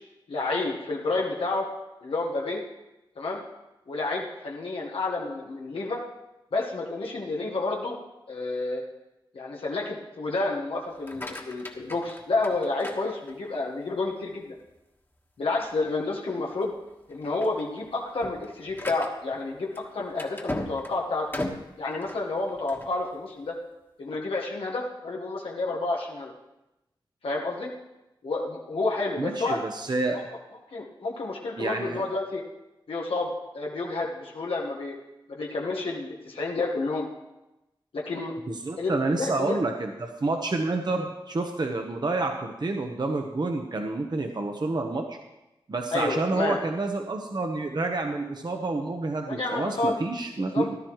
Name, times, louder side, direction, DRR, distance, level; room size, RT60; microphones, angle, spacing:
voice 1, 0.3-1.7 2.0-2.6 3.2-3.4 3.9-6.0 6.5-8.0 8.3-8.8 9.3-14.6 15.4-16.7 17.1-21.3 21.8-23.5 24.0-26.3 27.2-27.7 28.2-29.6 30.7-32.4 32.9-35.0 35.3-37.1 37.9-38.3 38.8-39.6 45.9-46.6 49.3-50.0 50.5-50.7, left 3 dB, 90° left, -2 dB, 1.4 m, -30 dB
sound 1, 10.9-13.7 14.2-14.7 15.1-15.2 15.6-15.8 16.5-16.7 17.1-23.0, left 1 dB, 25° left, 1.4 m, -38 dB
voice 2, 29.2-30.2 31.6-32.0 38.5-45.2 45.7-50.8, right 2 dB, 50° right, 3 dB, 1.0 m, -29 dB
15.0 x 12.0 x 3.2 m, 0.96 s
wide cardioid pair, 60°, 9 cm